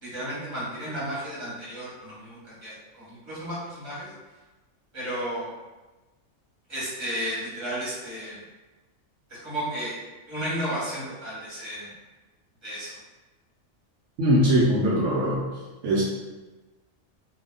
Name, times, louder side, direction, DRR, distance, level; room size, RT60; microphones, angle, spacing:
voice 1, 0.0-4.1 4.9-5.5 6.7-8.4 9.3-10.0 10.3-12.0 12.6-13.0, equal, 20° right, -9 dB, 1.3 m, -33 dB
voice 2, 14.2-15.4 15.8-16.0, equal, 75° right, -5 dB, 1.0 m, -21 dB
2.7 x 2.1 x 3.8 m, 1.2 s
omnidirectional pair, 1.3 m